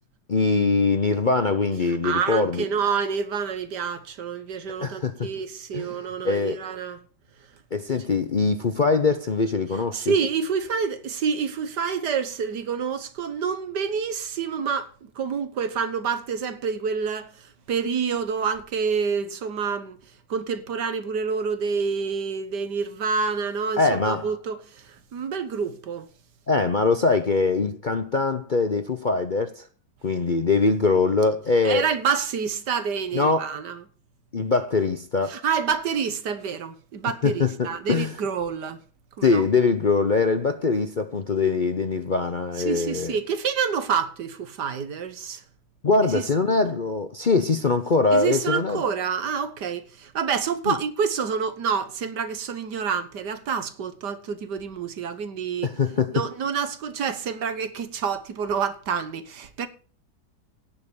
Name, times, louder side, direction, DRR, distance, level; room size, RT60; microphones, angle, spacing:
voice 1, 0.3-2.6 4.8-5.3 5.7-5.9 6.2-6.6 7.7-10.1 23.8-24.3 26.5-29.7 30.0-31.9 33.1-33.5 34.3-35.4 37.2-38.2 39.2-43.2 45.8-48.8 50.7-50.8 55.6-56.2, left 4 dB, 40° left, 0.7 m, -22 dB
voice 2, 1.9-7.0 9.9-20.0 20.3-26.1 31.6-33.8 35.3-38.8 39.2-39.4 42.6-45.4 46.1-46.2 48.1-59.7, right 6 dB, 75° right, 1.9 m, -28 dB
17.5 x 5.9 x 7.0 m
omnidirectional pair, 1.8 m